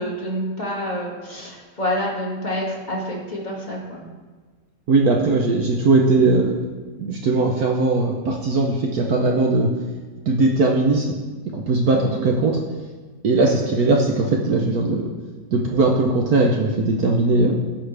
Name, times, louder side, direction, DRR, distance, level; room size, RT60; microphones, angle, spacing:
voice 1, 0.0-4.0 11.9-12.2 13.4-13.6, equal, 25° left, -4 dB, 2.0 m, -28 dB
voice 2, 4.9-6.5 7.0-9.7 10.3-11.0 11.5-12.5 13.2-15.1 15.5-17.5, right 3 dB, 60° right, 0 dB, 1.2 m, -19 dB
16.0 x 5.7 x 3.4 m, 1.3 s
omnidirectional pair, 1.9 m